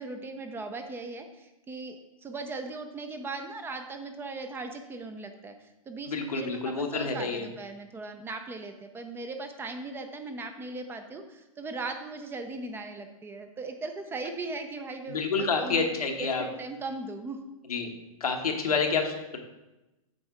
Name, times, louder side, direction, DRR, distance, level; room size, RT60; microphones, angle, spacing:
voice 1, 0.0-15.9 16.2-17.4, right 3 dB, 10° right, 7 dB, 0.4 m, -38 dB
voice 2, 6.1-7.4 15.1-16.5 17.7-17.9 18.2-19.4, left 4 dB, 90° left, 3 dB, 1.1 m, -28 dB
7.8 x 4.3 x 3.5 m, 1.0 s
hypercardioid pair, 125°, 19 cm